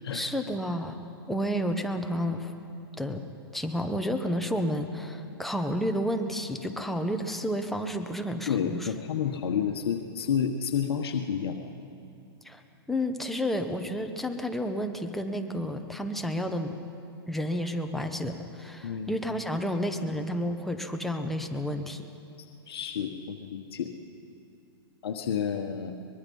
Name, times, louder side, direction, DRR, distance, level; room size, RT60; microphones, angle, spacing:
voice 1, 0.1-1.0 1.3-2.5 3.0-3.2 3.5-8.9 12.4-12.6 12.9-16.7 17.3-22.0, equal, ahead, 5 dB, 1.1 m, -31 dB
voice 2, 8.5-11.6 18.8-19.2 22.7-23.9 25.0-25.9, left 7 dB, 75° left, 4 dB, 1.3 m, -30 dB
23.5 x 21.5 x 5.5 m, 2.6 s
hypercardioid pair, 135°, 13 cm